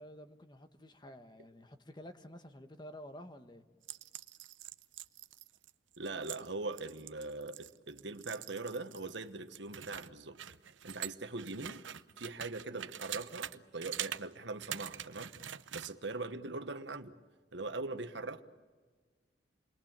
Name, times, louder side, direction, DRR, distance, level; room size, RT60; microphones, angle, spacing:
voice 1, 0.0-3.6, equal, 25° left, 1.4 m, -51 dB
sound 1, 3.8-9.2 9.5-13.6 13.8-14.2 14.6-15.9, right 11 dB, 85° right, 0.8 m, -44 dB
voice 2, 6.0-10.4 10.8-11.8 12.2-15.3 15.7-17.1 17.5-18.4, right 3 dB, 70° right, 1.4 m, -41 dB
29.0 x 21.5 x 7.5 m
head